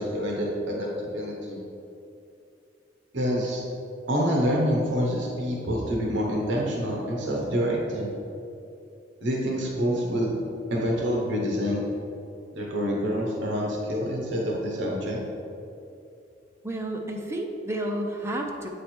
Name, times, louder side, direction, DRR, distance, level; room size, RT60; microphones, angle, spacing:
voice 1, 0.0-1.6 3.1-3.6 4.1-8.1 9.2-10.4 10.7-11.8 12.5-15.2, equal, 65° right, -3 dB, 0.9 m, -27 dB
voice 2, 16.6-18.7, right 1 dB, 15° right, 1 dB, 0.5 m, -31 dB
7.9 x 3.2 x 4.4 m, 2.7 s
head